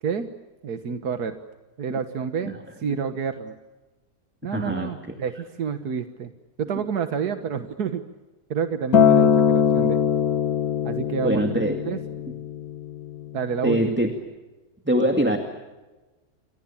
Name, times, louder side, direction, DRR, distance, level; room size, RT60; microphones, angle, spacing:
voice 1, 0.6-1.4 1.8-3.5 4.4-6.3 6.6-8.0 8.5-10.0 10.8-11.4 11.8-12.0 13.3-14.0, right 6 dB, 85° right, 8 dB, 1.9 m, -29 dB
voice 2, 4.5-4.9 11.2-11.8 13.6-14.1 14.9-15.4, right 1 dB, 5° right, 5 dB, 2.2 m, -22 dB
Acoustic guitar, 8.9-13.2 14.1-14.2, left 7 dB, 75° left, 2.0 m, -21 dB
30.0 x 25.5 x 7.3 m, 1.1 s
omnidirectional pair, 1.6 m